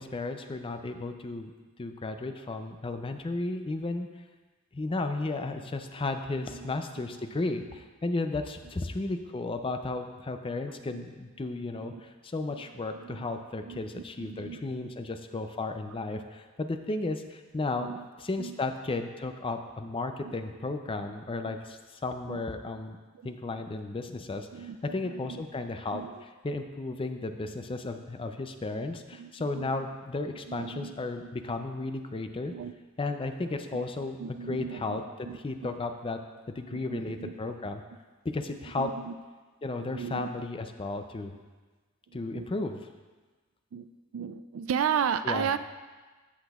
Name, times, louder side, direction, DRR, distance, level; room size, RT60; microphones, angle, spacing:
voice 1, 0.0-1.5 1.8-4.1 4.7-17.9 18.2-23.0 23.2-26.0 26.4-32.5 33.0-35.0 35.4-36.2 36.5-37.8 38.3-38.9 39.6-41.4 42.1-42.8 45.2-45.5, left 2 dB, 25° left, 7 dB, 0.4 m, -34 dB
voice 2, 6.3-7.1 10.7-11.1 11.7-12.0 12.5-12.6 12.9-14.9 17.7-18.1 18.4-18.6 20.2-20.3 21.5-21.6 22.3-22.4 23.2-23.6 24.5-25.4 25.9-26.2 29.2-29.7 30.5-31.0 32.5-32.7 33.7-33.9 34.2-35.8 36.7-37.3 38.8-39.1 39.8-40.3 42.1-42.5 43.7-43.9 44.1-45.6, right 7 dB, 65° right, 12 dB, 0.3 m, -36 dB
14.5 x 6.0 x 2.4 m, 1.3 s
head